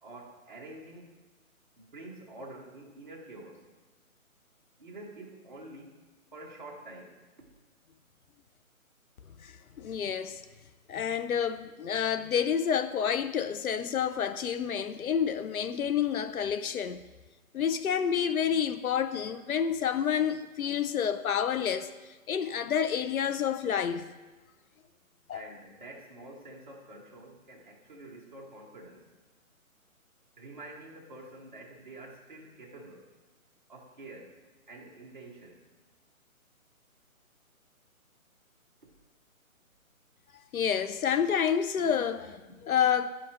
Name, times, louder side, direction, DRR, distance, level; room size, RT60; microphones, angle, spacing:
voice 1, 0.0-1.2 1.7-3.7 4.8-7.2 25.3-29.1 30.4-33.1 33.7-34.4 34.7-35.7, right 2 dB, 35° right, 1.2 m, -47 dB
voice 2, 9.4-10.4 10.9-17.0 17.5-21.9 22.3-24.1 25.3-25.4 40.5-43.1, left 8 dB, 75° left, 0.6 m, -29 dB
11.5 x 5.1 x 3.0 m
hypercardioid pair, 175°, 43 cm